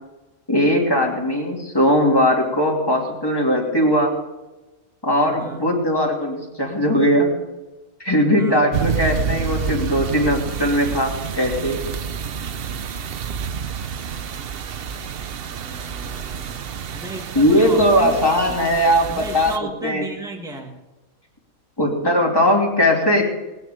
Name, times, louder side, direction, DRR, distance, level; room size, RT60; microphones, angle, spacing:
voice 1, 0.5-4.1 5.0-7.4 8.0-11.8 17.3-19.5 19.8-20.0 21.8-23.2, equal, 15° left, -1 dB, 3.0 m, -19 dB
voice 2, 5.3-5.7 8.3-8.6 15.5-18.7 19.0-20.8, right 1 dB, 5° right, 1 dB, 1.7 m, -35 dB
sound 1, 8.7-19.6, right 7 dB, 50° right, 0.8 m, -29 dB
20.0 x 10.0 x 5.1 m, 1.1 s
omnidirectional pair, 1.5 m